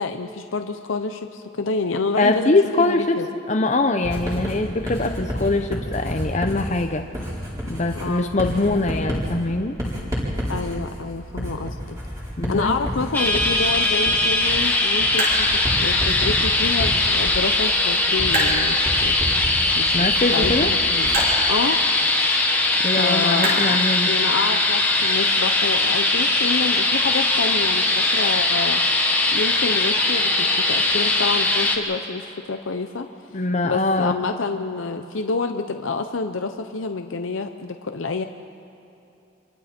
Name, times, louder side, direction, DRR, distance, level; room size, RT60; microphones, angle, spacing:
voice 1, 0.0-3.3 7.9-8.4 10.5-12.0 12.5-19.2 19.8-20.1 20.3-21.1 21.5-21.8 23.0-23.8 24.1-28.8 29.3-33.1 33.6-38.3, left 4 dB, 75° left, 6 dB, 0.7 m, -28 dB
voice 2, 2.2-3.2 3.5-7.0 7.7-9.7 12.4-12.7 19.9-20.7 22.8-24.1 33.3-34.1, left 2 dB, 35° left, 5 dB, 0.8 m, -22 dB
Writing, 4.0-21.4, equal, 15° right, 4.3 m, -30 dB
sound 1, 11.3-24.5, right 1 dB, 50° right, 5.8 m, -34 dB
sound 2, 13.1-31.8, left 2 dB, 10° left, 1.5 m, -20 dB
27.0 x 23.5 x 4.4 m, 2.8 s
head